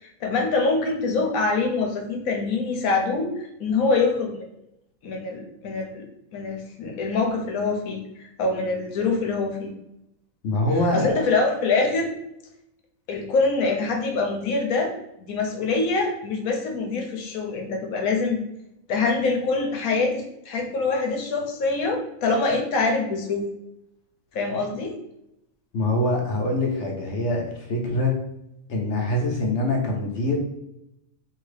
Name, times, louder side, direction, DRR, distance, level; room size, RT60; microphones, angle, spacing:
voice 1, 0.2-4.3 5.0-6.0 6.3-9.7 10.9-12.1 13.1-14.9 15.2-18.4 18.9-23.4 24.3-24.9, left 3 dB, 80° left, 1 dB, 1.2 m, -24 dB
voice 2, 10.4-11.1 25.7-27.4 27.7-28.1 28.7-30.3, left 1 dB, 60° left, 0 dB, 1.0 m, -24 dB
2.8 x 2.8 x 3.2 m, 0.83 s
omnidirectional pair, 1.4 m